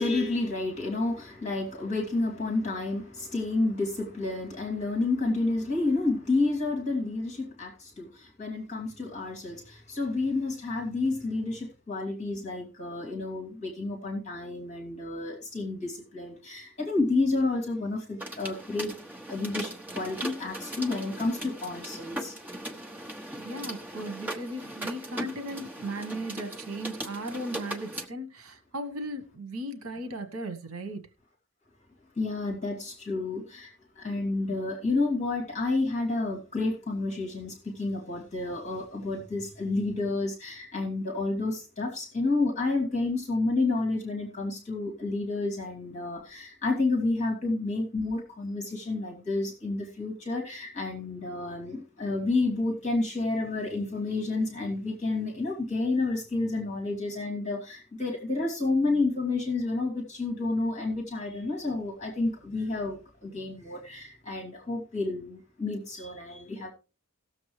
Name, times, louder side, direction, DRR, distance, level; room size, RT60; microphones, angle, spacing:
voice 1, 0.0-18.9 19.3-22.4 32.2-66.7, left 3 dB, 30° left, 2.7 m, -30 dB
sound 1, 18.2-28.1, right 1 dB, 10° right, 1.0 m, -39 dB
voice 2, 23.4-31.1, right 1 dB, 75° right, 1.2 m, -37 dB
18.5 x 7.2 x 3.2 m
head